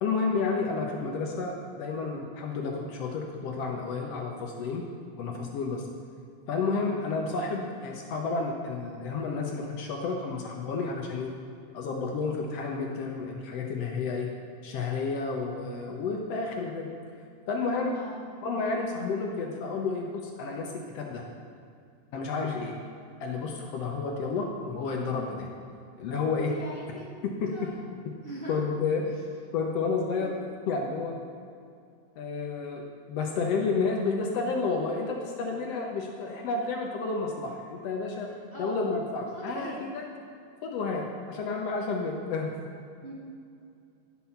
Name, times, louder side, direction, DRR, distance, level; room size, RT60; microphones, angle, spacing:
voice 1, 0.0-4.9 5.2-5.9 6.5-11.3 11.7-14.3 14.6-16.9 17.5-18.0 18.4-21.2 22.1-22.8 23.2-25.5 26.0-26.5 27.2-27.7 28.0-28.1 28.5-29.2 29.5-30.3 30.7-31.2 32.2-38.3 38.6-40.0 40.6-42.5, left 4 dB, 70° left, 1 dB, 1.7 m, -31 dB
voice 2, 26.5-27.1 27.5-27.8 28.2-28.6 29.1-29.2 30.2-30.5 38.5-38.8 39.3-39.8 43.0-43.1, equal, 30° right, -6 dB, 1.1 m, -42 dB
11.0 x 6.0 x 5.7 m, 2.4 s
omnidirectional pair, 3.4 m